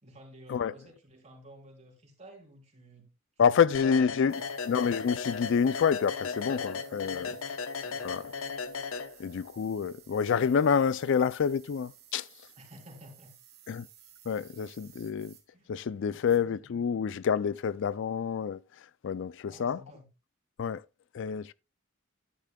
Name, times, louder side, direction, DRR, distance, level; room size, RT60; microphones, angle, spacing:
voice 1, 0.0-3.1 3.5-3.8 4.1-4.6 7.1-7.4 7.8-8.3 12.6-13.3 15.5-15.7 16.1-16.7 19.4-20.1, right 1 dB, 35° right, 3.6 m, -53 dB
voice 2, 3.4-4.4 4.7-7.3 8.0-8.3 9.2-12.3 13.7-13.9 14.3-15.3 15.7-18.6 19.0-19.8 20.6-20.8 21.1-21.5, left 6 dB, 65° left, 0.4 m, -28 dB
sound 1, 3.7-9.5, left 5 dB, 85° left, 0.9 m, -36 dB
sound 2, 4.3-15.5 16.0-16.4, right 10 dB, 55° right, 2.7 m, -57 dB
12.0 x 10.0 x 2.3 m
head